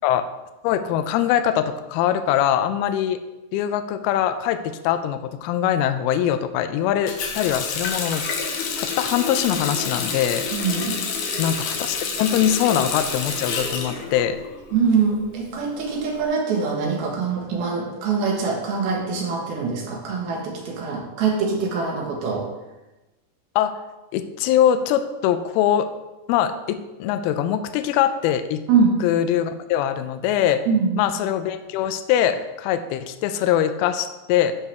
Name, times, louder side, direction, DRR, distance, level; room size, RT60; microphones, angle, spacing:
voice 1, 0.6-3.2 3.5-10.5 11.4-14.4 23.6-23.8 24.1-25.9 26.3-28.6 29.0-30.6 31.0-34.5, left 10 dB, 85° left, 10 dB, 2.4 m, -22 dB
Water tap faucet, 7.1-14.8 15.1-16.2, left 5 dB, 70° left, 2.1 m, -28 dB
voice 2, 10.5-11.0 14.7-22.5 28.7-29.0 30.7-31.0, right 5 dB, 75° right, -1 dB, 3.2 m, -23 dB
10.5 x 6.6 x 3.4 m, 1.0 s
omnidirectional pair, 4.5 m